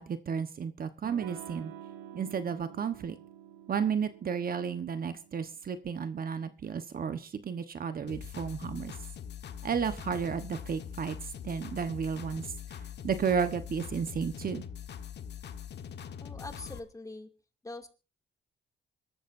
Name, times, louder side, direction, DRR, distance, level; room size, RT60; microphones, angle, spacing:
voice 1, 0.0-1.7 2.1-3.2 3.7-8.9 9.6-12.4 12.7-14.6, right 7 dB, 45° right, 10 dB, 1.2 m, -33 dB
Electric guitar / Strum, 1.0-6.4, right 10 dB, 90° right, 1.5 m, -49 dB
sound 1, 8.1-16.8, left 9 dB, 60° left, 1.4 m, -43 dB
voice 2, 16.2-17.3 17.6-17.9, left 2 dB, 15° left, 5 dB, 2.5 m, -43 dB
25.5 x 13.5 x 2.7 m, 0.34 s
cardioid pair, 90°, 20 cm